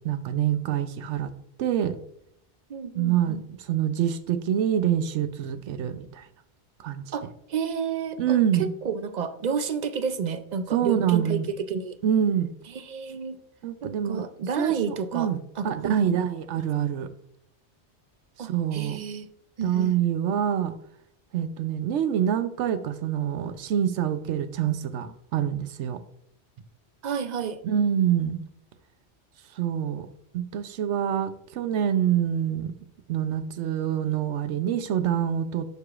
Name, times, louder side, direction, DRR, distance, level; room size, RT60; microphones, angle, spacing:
voice 1, 0.0-1.3 1.6-2.0 2.9-6.3 6.8-7.0 8.2-8.7 10.7-11.5 12.0-12.5 13.6-14.2 14.6-15.4 15.6-17.1 18.4-19.0 19.6-20.7 21.3-26.0 27.6-28.4 29.6-30.1 30.3-32.7 33.1-35.7, right 9 dB, 85° right, 11 dB, 0.9 m, -26 dB
voice 2, 2.7-3.4 7.1-12.0 12.7-13.4 13.8-16.2 18.4-19.3 19.6-19.9 27.0-27.6, right 6 dB, 55° right, 11 dB, 0.5 m, -31 dB
11.5 x 4.8 x 2.4 m, 0.71 s
omnidirectional pair, 1.2 m